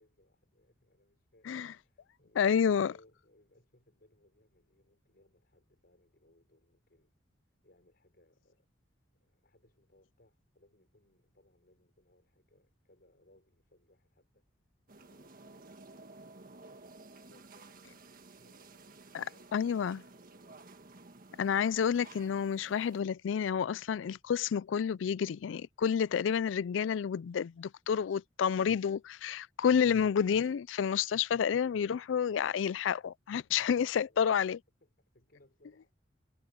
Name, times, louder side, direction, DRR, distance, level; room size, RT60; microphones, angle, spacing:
voice 1, 0.0-7.2 7.6-8.7 9.1-14.5 14.9-16.6 17.1-20.6 30.3-30.6 32.0-32.1 34.0-34.2 34.8-35.9, left 1 dB, 55° left, 5.7 m, -67 dB
voice 2, 2.4-2.9 19.1-19.2 19.5-20.0 21.4-34.6, left 7 dB, 80° left, 0.4 m, -29 dB
sound 1, 14.9-23.0, right 3 dB, 50° right, 1.6 m, -54 dB
head